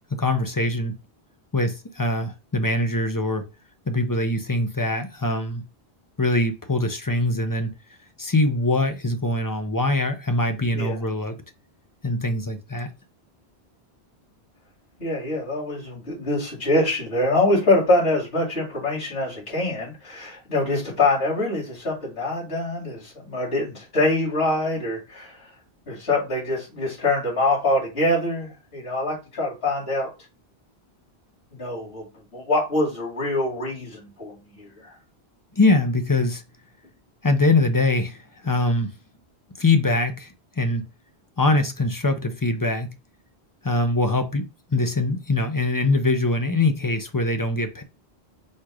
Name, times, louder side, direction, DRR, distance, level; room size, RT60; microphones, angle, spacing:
voice 1, 0.1-0.9 1.5-3.5 3.9-5.6 6.2-7.7 8.2-11.4 12.0-12.9 35.5-36.4 37.2-38.9 39.6-40.8 41.4-42.9 43.6-47.8, left 2 dB, 30° left, 0.4 m, -23 dB
voice 2, 15.0-25.5 25.9-30.1 31.5-32.0 32.3-34.9, left 2 dB, 70° left, 2.4 m, -24 dB
4.5 x 2.4 x 4.7 m
omnidirectional pair, 1.1 m